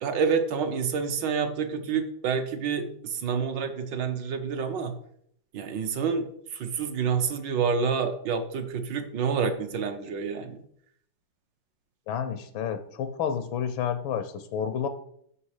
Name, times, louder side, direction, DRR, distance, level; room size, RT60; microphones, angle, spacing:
voice 1, 0.0-5.0 5.5-10.6, right 6 dB, 70° right, 7 dB, 1.5 m, -28 dB
voice 2, 12.1-14.9, left 8 dB, 85° left, 10 dB, 1.5 m, -30 dB
8.3 x 5.8 x 4.8 m, 0.68 s
omnidirectional pair, 2.1 m